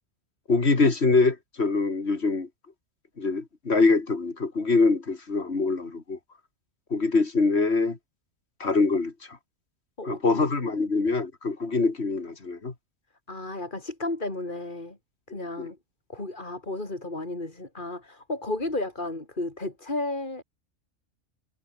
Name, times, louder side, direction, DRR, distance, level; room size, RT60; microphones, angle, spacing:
voice 1, 0.5-2.5 3.2-6.2 6.9-8.0 8.6-9.1 10.0-12.7 15.6-15.7, left 3 dB, 55° left, 3.0 m, -24 dB
voice 2, 10.0-10.5 10.7-10.9 13.3-15.0 15.3-15.8 16.1-20.4, left 2 dB, 40° left, 4.2 m, -33 dB
omnidirectional pair, 1.4 m